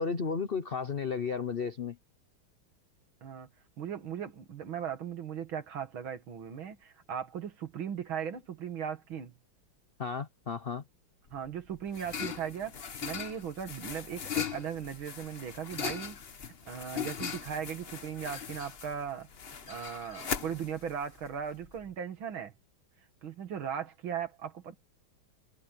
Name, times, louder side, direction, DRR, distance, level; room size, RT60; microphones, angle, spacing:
voice 1, 0.0-2.0 10.0-10.8, left 5 dB, 75° left, 0.5 m, -33 dB
voice 2, 3.8-9.3 11.3-16.2 16.7-19.3 19.7-22.5 23.2-24.8, right 8 dB, 70° right, 2.6 m, -38 dB
sound 1, 11.3-21.9, left 7 dB, 40° left, 1.0 m, -39 dB
omnidirectional pair, 2.3 m